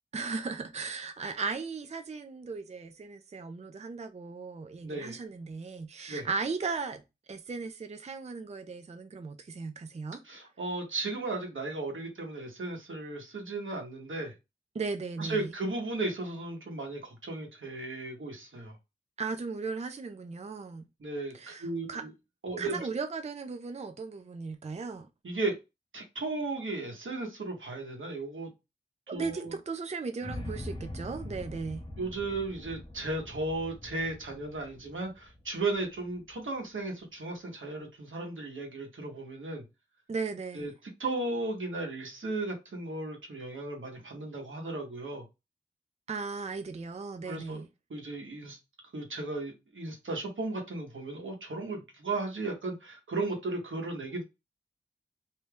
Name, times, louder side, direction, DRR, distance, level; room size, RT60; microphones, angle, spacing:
voice 1, 0.1-7.0 7.3-10.2 14.7-15.5 19.2-20.9 21.3-22.0 22.6-25.1 29.1-31.8 40.1-40.7 46.1-47.7, right 4 dB, 35° right, 0.4 m, -37 dB
voice 2, 4.8-5.2 6.1-6.3 10.2-14.3 15.2-18.8 21.0-21.3 21.6-22.1 22.4-22.9 25.2-25.5 25.9-28.5 29.1-29.6 32.0-39.6 40.5-45.2 47.2-47.6 47.9-48.6 48.9-54.2, right 2 dB, 85° right, 1.0 m, -35 dB
sound 1, 30.2-36.3, left 1 dB, 25° left, 0.7 m, -43 dB
2.7 x 2.2 x 3.3 m
wide cardioid pair, 70°, 20 cm